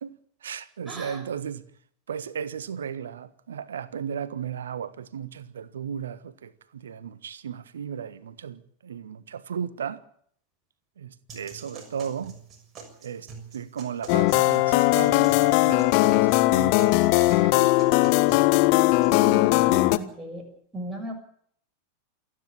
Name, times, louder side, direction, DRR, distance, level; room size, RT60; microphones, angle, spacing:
voice 1, 0.0-1.6 2.1-10.0 11.0-12.4 13.0-17.7, right 8 dB, 65° right, 1.3 m, -35 dB
voice 2, 0.9-1.2 19.1-20.5 20.7-21.1, right 1 dB, 10° right, 6.5 m, -36 dB
sound 1, 11.3-19.3, right 5 dB, 25° right, 6.5 m, -45 dB
sound 2, 14.1-20.0, left 20 dB, 45° left, 1.1 m, -19 dB
28.0 x 10.0 x 9.8 m
figure-of-eight pair, 90°, 0 cm